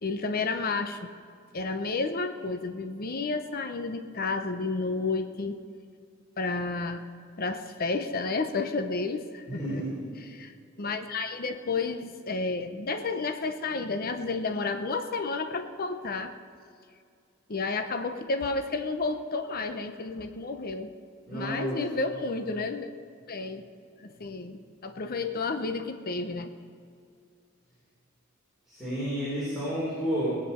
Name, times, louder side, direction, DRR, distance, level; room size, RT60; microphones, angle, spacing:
voice 1, 0.0-1.0 1.5-5.6 6.4-7.0 7.4-9.8 10.3-16.3 17.5-20.9 21.3-22.9 23.3-23.7 24.0-26.5, left 3 dB, 45° left, 7 dB, 0.8 m, -31 dB
voice 2, 9.6-10.1 21.3-21.8 28.7-30.3, right 1 dB, ahead, -11 dB, 4.4 m, -31 dB
19.0 x 9.0 x 5.6 m, 2.3 s
head